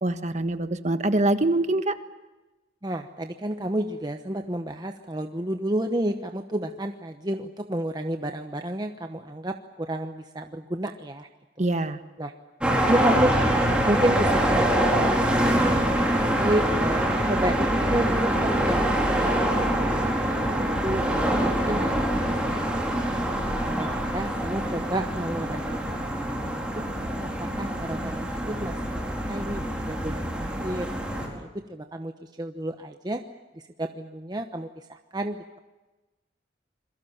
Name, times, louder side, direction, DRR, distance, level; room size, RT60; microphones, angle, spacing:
voice 1, 0.0-1.9 11.6-12.0, right 2 dB, 40° right, 9 dB, 1.4 m, -24 dB
voice 2, 2.8-11.3 11.6-11.7 12.2-12.3 12.9-13.3 13.8-18.8 19.2-20.0 20.3-23.1 23.6-26.9 27.6-29.0 29.2-30.9 31.2-33.2 33.8-35.4, right 1 dB, 20° right, 6 dB, 1.0 m, -31 dB
sound 1, 12.6-31.3, right 1 dB, 5° right, 4.5 m, -25 dB
27.5 x 22.5 x 7.2 m, 1.1 s
head